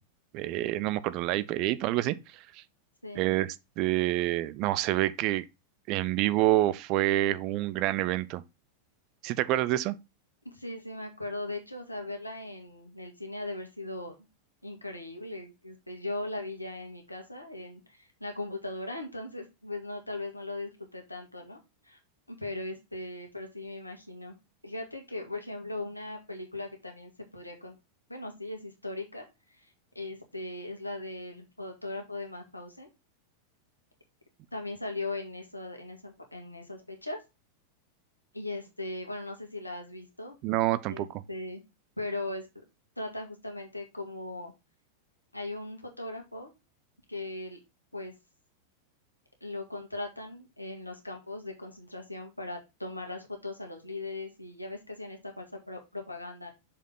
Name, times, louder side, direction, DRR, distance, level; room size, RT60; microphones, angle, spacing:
voice 1, 0.3-2.6 3.1-5.4 5.9-8.4 9.2-10.0 40.4-41.2, right 15 dB, 40° right, 0.6 m, -27 dB
voice 2, 10.4-14.2 14.6-22.0 22.3-24.4 24.6-27.8 28.1-32.9 34.5-37.2 38.3-40.4 40.9-41.6 42.0-42.5 43.0-44.5 45.3-46.5 47.1-47.6 47.9-48.1 49.4-56.5, left 2 dB, 85° left, 2.0 m, -39 dB
6.7 x 5.3 x 3.8 m
figure-of-eight pair, 90°, 0 cm